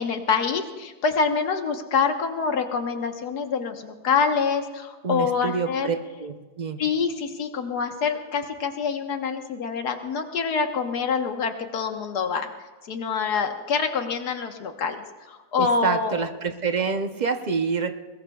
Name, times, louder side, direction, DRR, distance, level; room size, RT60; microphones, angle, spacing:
voice 1, 0.0-5.9 6.8-12.5 12.9-16.2, left 5 dB, 80° left, 5 dB, 1.7 m, -26 dB
voice 2, 5.0-6.8 15.6-17.9, right 5 dB, 40° right, 7 dB, 0.6 m, -27 dB
21.5 x 20.5 x 2.3 m, 1.3 s
omnidirectional pair, 1.7 m